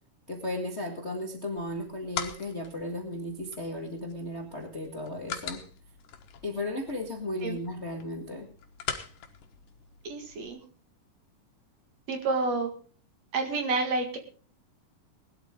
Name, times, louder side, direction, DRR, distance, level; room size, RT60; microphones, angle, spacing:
voice 1, 0.3-5.6 6.4-8.5, left 1 dB, 30° left, 2 dB, 1.4 m, -35 dB
sound 1, 1.6-10.5, left 8 dB, 80° left, 2.9 m, -42 dB
voice 2, 10.0-10.6 12.1-12.7 13.3-14.2, right 3 dB, 55° right, 4 dB, 2.9 m, -29 dB
20.0 x 12.5 x 3.7 m, 0.40 s
omnidirectional pair, 3.8 m